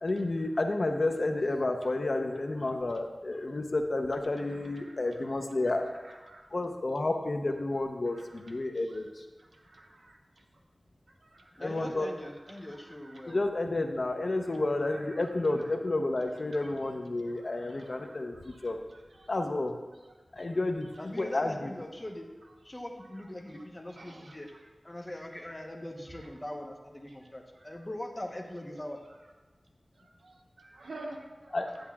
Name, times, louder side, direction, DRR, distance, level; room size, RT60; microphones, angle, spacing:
voice 1, 0.0-5.8 6.5-9.2 11.6-12.1 13.3-18.8 19.3-19.7 20.3-21.7 31.5-31.7, left 2 dB, 60° left, 4 dB, 0.7 m, -31 dB
voice 2, 9.7-10.2 11.3-11.4 15.0-15.1 16.5-16.6 17.4-18.2 18.5-18.7 19.2-19.3 24.0-24.3 30.0-30.1 30.6-31.5, right 2 dB, 90° right, 1 dB, 1.0 m, -47 dB
voice 3, 11.6-13.4 21.0-22.3 22.6-24.5 24.8-29.0, left 1 dB, 25° left, 2 dB, 0.9 m, -41 dB
10.5 x 8.6 x 2.4 m, 1.2 s
wide cardioid pair, 70°, 0 cm